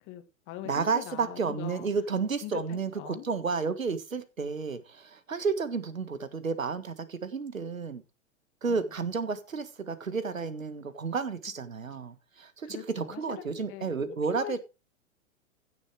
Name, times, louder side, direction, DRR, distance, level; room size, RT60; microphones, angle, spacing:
voice 1, 0.1-3.3 8.7-8.8 12.6-14.6, left 13 dB, 30° left, 1.9 m, -43 dB
voice 2, 0.6-8.0 8.6-14.6, right 5 dB, 75° right, 1.7 m, -32 dB
16.0 x 7.2 x 3.3 m
figure-of-eight pair, 100°, 40 cm